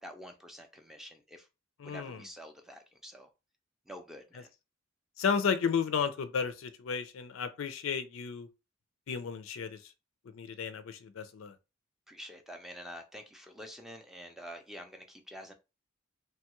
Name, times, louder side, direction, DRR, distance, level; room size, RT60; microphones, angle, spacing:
voice 1, 0.0-1.4 1.8-3.3 3.9-4.5 12.1-15.5, equal, ahead, 0.4 m, -47 dB
voice 2, 1.8-2.2 5.2-8.5 9.1-9.8 10.3-11.5, left 6 dB, 75° left, 0.4 m, -33 dB
3.0 x 2.3 x 2.9 m
head